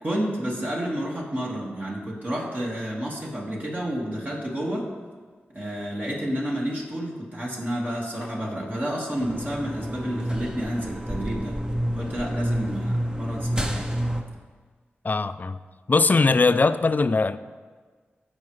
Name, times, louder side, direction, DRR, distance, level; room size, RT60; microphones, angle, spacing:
voice 1, 0.0-4.9 5.5-11.6 11.9-13.9, equal, 40° right, -4 dB, 2.0 m, -30 dB
sound 1, 9.2-14.2, equal, 15° right, 0.9 m, -29 dB
voice 2, 15.0-15.6 15.9-17.4, left 3 dB, 40° left, 13 dB, 0.4 m, -20 dB
14.5 x 4.8 x 3.2 m, 1.5 s
cardioid pair, 40°, 4 cm